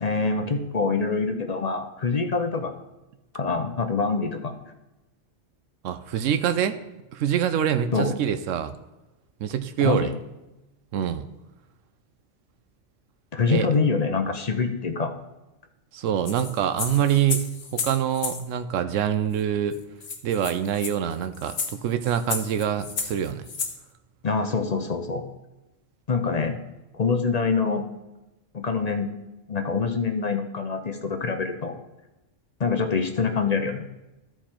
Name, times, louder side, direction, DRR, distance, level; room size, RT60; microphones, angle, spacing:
voice 1, 0.0-2.7 3.3-4.5 7.9-8.1 9.8-10.1 13.3-15.1 24.2-25.2 26.1-26.6 26.9-27.8 28.5-29.1 29.5-31.8 32.6-33.9, left 4 dB, 40° left, 6 dB, 0.6 m, -25 dB
voice 2, 5.8-6.8 7.1-8.8 9.4-10.1 10.9-11.2 13.5-13.7 15.9-17.5 17.7-19.8 20.2-23.5, right 9 dB, 90° right, 9 dB, 1.0 m, -25 dB
sound 1, 16.3-18.4 19.4-19.5 19.7-19.8 20.0-23.8, left 5 dB, 75° left, 1.3 m, -32 dB
13.0 x 4.6 x 4.3 m, 1.0 s
omnidirectional pair, 1.3 m